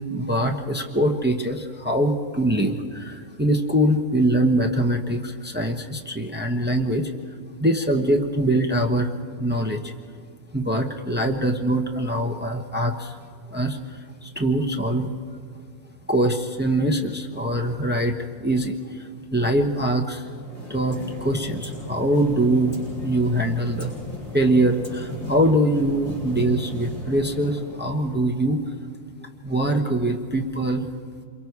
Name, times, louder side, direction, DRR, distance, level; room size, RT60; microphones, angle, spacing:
voice 1, 0.1-7.1 7.6-9.1 9.4-9.9 10.5-13.2 13.5-13.8 14.2-15.1 16.1-19.0 19.3-20.2 20.7-23.9 24.3-28.6 29.4-30.8, right 1 dB, 10° right, 3 dB, 0.9 m, -23 dB
sound 1, 20.2-28.4, left 2 dB, 35° left, 6.8 m, -36 dB
28.0 x 23.5 x 4.7 m, 2.1 s
omnidirectional pair, 1.6 m